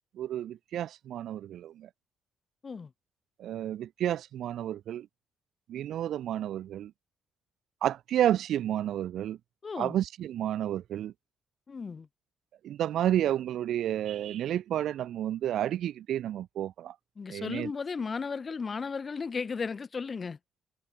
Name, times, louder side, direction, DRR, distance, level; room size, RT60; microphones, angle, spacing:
voice 1, 0.2-1.9 3.4-5.1 5.7-6.9 7.8-9.4 9.8-11.1 12.6-16.9 17.3-17.7, right 11 dB, 75° right, 0.4 m, -31 dB
voice 2, 9.6-10.0 11.7-12.1 17.2-20.4, left 5 dB, 35° left, 1.3 m, -35 dB
cardioid pair, 90°, 0 cm